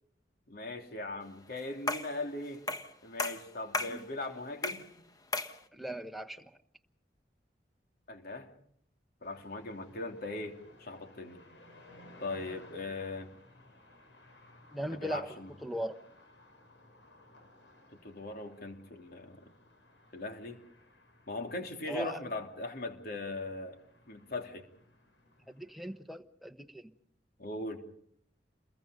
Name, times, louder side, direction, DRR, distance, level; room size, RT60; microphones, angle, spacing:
voice 1, 0.5-2.6 3.0-4.9 8.1-8.5 9.2-11.4 12.2-13.3 14.9-15.5 18.0-19.4 20.1-20.6 21.3-23.8 24.1-24.6 27.4-27.8, left 2 dB, 60° left, 4 dB, 3.2 m, -39 dB
sound 1, 1.9-2.2 2.7-2.9 3.2-4.0 4.6-4.9 5.3-5.6, left 2 dB, 20° left, 1.3 m, -34 dB
voice 2, 5.7-6.5 14.7-15.3 15.6-16.0 21.9-22.2 25.5-26.9, right 1 dB, ahead, 7 dB, 1.2 m, -38 dB
sound 2, 9.2-26.0, left 1 dB, 85° left, 7.0 m, -59 dB
29.0 x 22.0 x 5.3 m, 0.66 s
head